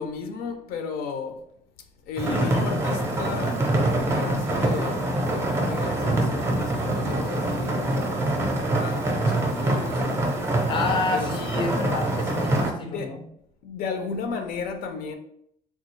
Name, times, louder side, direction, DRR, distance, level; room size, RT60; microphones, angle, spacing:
voice 1, 0.0-1.4 2.0-10.1 11.1-11.4 12.9-13.2 13.6-15.2, left 5 dB, 80° left, 0.5 m, -34 dB
sound 1, 2.2-12.7, right 1 dB, 15° right, 0.5 m, -25 dB
voice 2, 2.3-2.8 10.7-13.2, left 4 dB, 35° left, 0.4 m, -29 dB
3.5 x 2.3 x 3.1 m
cardioid pair, 165°, 15 cm